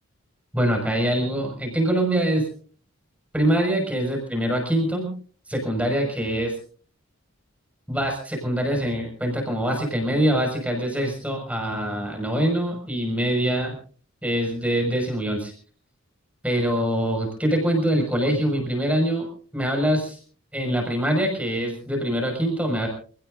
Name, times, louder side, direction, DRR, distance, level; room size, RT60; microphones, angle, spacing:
voice 1, 0.5-2.5 3.3-5.1 5.5-6.5 7.9-13.7 14.2-15.5 16.4-19.3 19.5-20.2 20.5-22.9, right 1 dB, 5° right, 1 dB, 6.0 m, -24 dB
28.0 x 18.0 x 2.7 m, 0.43 s
head